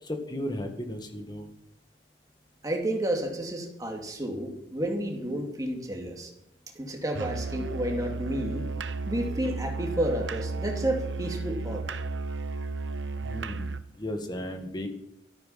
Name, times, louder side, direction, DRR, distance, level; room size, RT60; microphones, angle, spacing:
voice 1, 0.0-1.5 13.2-13.7 14.0-14.9, left 1 dB, 25° left, 5 dB, 1.8 m, -35 dB
voice 2, 2.6-6.3 6.8-8.6 9.1-11.8, right 1 dB, 20° right, 1 dB, 2.5 m, -31 dB
Musical instrument, 7.1-13.9, right 3 dB, 85° right, 0.8 m, -33 dB
13.5 x 12.5 x 5.8 m, 0.80 s
head